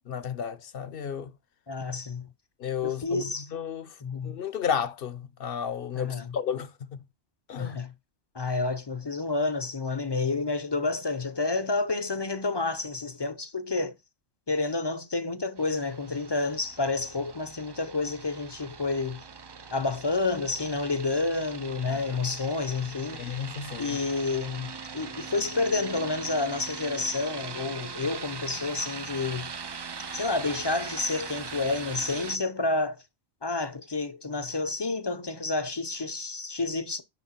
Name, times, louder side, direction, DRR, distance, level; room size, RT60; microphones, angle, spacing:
voice 1, 0.1-1.3 2.6-3.9 4.2-7.0 7.5-7.8 21.9-22.0 23.1-24.0, left 8 dB, 60° left, 0.8 m, -33 dB
voice 2, 1.7-2.3 2.8-3.5 4.0-4.4 5.9-6.3 7.6-7.9 8.3-13.9 14.5-19.2 19.7-23.3 23.8-29.5 30.1-33.0 33.4-37.0, left 3 dB, 30° left, 0.6 m, -29 dB
sound 1, 15.6-32.4, right 5 dB, 45° right, 0.3 m, -41 dB
7.1 x 6.4 x 4.3 m
omnidirectional pair, 1.2 m